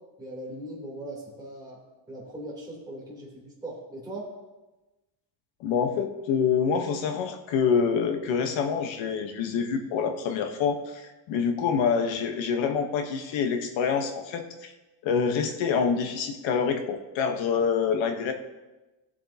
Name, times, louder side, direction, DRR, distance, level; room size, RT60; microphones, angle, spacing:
voice 1, 0.2-1.8 2.1-4.3, right 1 dB, 10° right, -5 dB, 3.1 m, -39 dB
voice 2, 5.6-14.7 15.0-18.3, left 6 dB, 75° left, 6 dB, 1.2 m, -26 dB
17.0 x 7.3 x 2.8 m, 1.1 s
cardioid pair, 175°, 46 cm